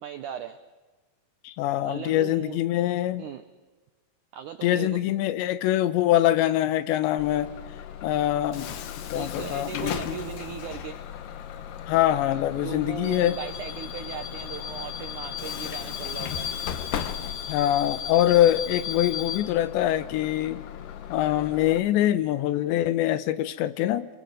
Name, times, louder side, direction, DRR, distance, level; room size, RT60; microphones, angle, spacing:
voice 1, 0.0-0.6 1.8-2.6 3.2-3.4 4.3-5.0 9.1-11.0 12.6-16.5, right 9 dB, 85° right, 10 dB, 1.7 m, -37 dB
voice 2, 1.4-3.3 4.6-7.5 8.0-8.7 9.1-10.2 11.9-13.4 17.5-20.6 21.1-24.1, left 13 dB, 90° left, 14 dB, 3.3 m, -24 dB
Bus / Alarm, 7.2-21.8, left 9 dB, 65° left, 2.5 m, -35 dB
29.0 x 22.5 x 8.0 m, 1.3 s
omnidirectional pair, 5.0 m